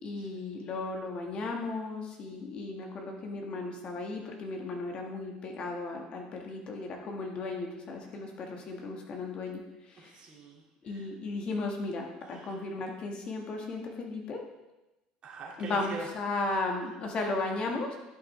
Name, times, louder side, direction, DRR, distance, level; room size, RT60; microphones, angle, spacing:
voice 1, 0.0-10.2 10.8-14.4 15.6-18.0, left 3 dB, 45° left, 2 dB, 1.5 m, -35 dB
voice 2, 10.0-11.1 12.2-12.6 15.2-16.1 16.4-16.5, right 3 dB, 40° right, -3 dB, 2.2 m, -44 dB
11.0 x 5.4 x 3.3 m, 1.0 s
supercardioid pair, 110°, 2 cm